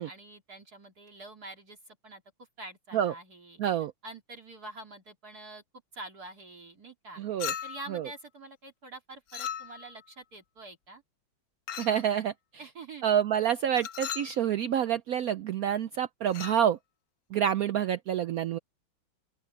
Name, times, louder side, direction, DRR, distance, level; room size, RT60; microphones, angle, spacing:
voice 1, 0.0-2.2 2.6-3.6 4.0-5.6 5.9-7.2 7.6-11.0 12.6-13.1, right 2 dB, 50° right, 3.5 m, -46 dB
voice 2, 3.6-3.9 7.2-7.5 7.9-8.1 11.8-12.3 13.0-16.8 17.3-18.6, right 9 dB, 85° right, 0.7 m, -27 dB
Chink clink, 7.4-8.0 9.3-10.0 11.7-12.0 13.7-14.4 16.3-16.6, left 9 dB, 60° left, 1.1 m, -37 dB
open air
omnidirectional pair, 2.2 m